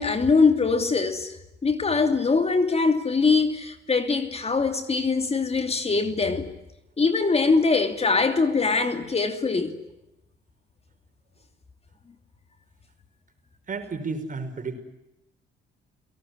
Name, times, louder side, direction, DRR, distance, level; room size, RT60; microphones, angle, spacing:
voice 1, 0.0-1.3 1.6-6.5 7.0-9.7, left 4 dB, 30° left, 2.8 m, -22 dB
voice 2, 13.7-14.8, right 4 dB, 40° right, 5.7 m, -32 dB
29.5 x 18.5 x 9.8 m
cardioid pair, 90°, 20 cm